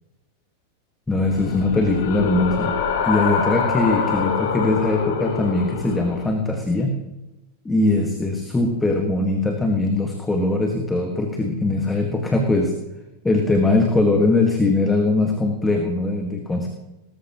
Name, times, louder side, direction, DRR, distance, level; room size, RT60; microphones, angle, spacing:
voice 1, 1.1-2.7 3.0-7.0 7.7-12.7 13.2-16.7, left 2 dB, 10° left, 3 dB, 1.7 m, -21 dB
sound 1, 1.2-6.3, left 6 dB, 50° left, 1.9 m, -25 dB
19.0 x 14.0 x 3.0 m, 1.0 s
figure-of-eight pair, 90°, 0 cm